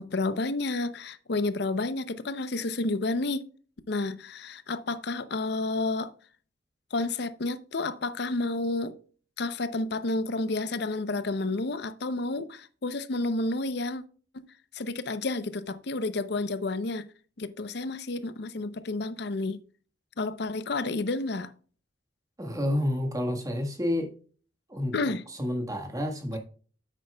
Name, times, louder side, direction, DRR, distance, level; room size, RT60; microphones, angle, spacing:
voice 1, 0.0-3.5 3.9-6.1 6.9-9.0 9.4-14.0 14.3-14.5 14.7-17.1 17.4-19.6 20.2-21.5 24.9-25.2, left 2 dB, 60° left, 0.6 m, -30 dB
voice 2, 22.4-24.1 24.7-24.9 25.3-26.4, left 1 dB, 20° right, 1.4 m, -29 dB
9.7 x 8.2 x 2.3 m
head